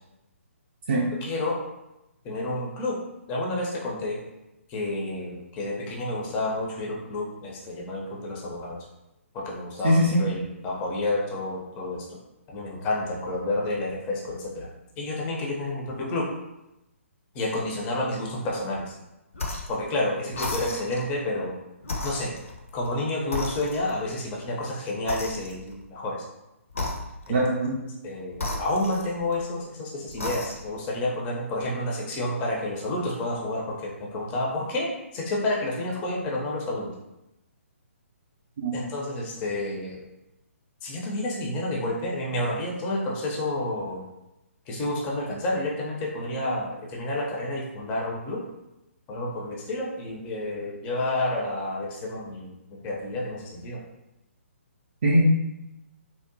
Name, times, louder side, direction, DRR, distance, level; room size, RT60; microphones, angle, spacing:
voice 1, 1.2-1.6 2.2-3.0 3.3-4.2 4.7-8.8 9.3-12.1 12.5-14.7 15.0-16.3 17.3-18.9 19.7-21.5 22.0-22.3 22.7-26.2 27.3-27.4 28.0-36.9 38.7-40.0 40.8-44.0 44.7-48.4 49.1-53.8, left 1 dB, 20° left, -3 dB, 0.4 m, -30 dB
voice 2, 9.8-10.2 27.3-27.8 38.6-38.8 55.0-55.4, equal, 45° right, -5 dB, 0.4 m, -21 dB
sound 1, 19.3-19.8 20.3-21.1 21.8-23.0 23.3-24.1 25.1-25.8 26.7-27.4 28.3-29.5 30.1-30.8, left 2 dB, 70° left, 0.5 m, -34 dB
2.7 x 2.0 x 2.6 m, 0.92 s
figure-of-eight pair, 130°, 7 cm